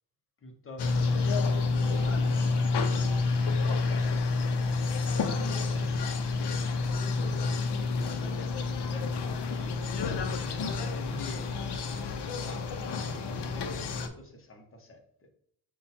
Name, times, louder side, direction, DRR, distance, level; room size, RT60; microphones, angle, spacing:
voice 1, 0.4-1.6 2.0-2.8 3.6-6.5 6.9-9.9 10.4-11.6 12.4-12.7 13.2-15.3, left 2 dB, 35° left, 4 dB, 0.7 m, -46 dB
sound 1, 0.8-14.1, left 4 dB, 85° left, 0.6 m, -29 dB
sound 2, 1.7-6.1 6.7-14.0, right 5 dB, 55° right, 1.1 m, -52 dB
5.5 x 2.3 x 4.1 m, 0.68 s
wide cardioid pair, 155°, 40 cm